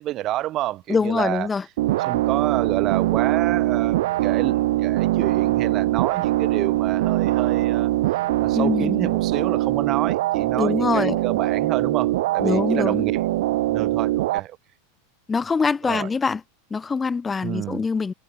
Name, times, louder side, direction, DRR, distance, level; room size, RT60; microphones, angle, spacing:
voice 1, 0.0-1.5 2.0-7.9 8.4-13.2 13.7-14.6 15.8-16.1 17.4-17.8, right 14 dB, 40° right, 0.7 m, -28 dB
voice 2, 0.9-1.6 8.5-9.1 10.6-11.2 12.4-13.1 15.3-16.4 16.7-18.1, left 5 dB, 20° left, 1.5 m, -23 dB
sound 1, 1.8-14.4, right 16 dB, 65° right, 1.0 m, -22 dB
figure-of-eight pair, 90°, 0 cm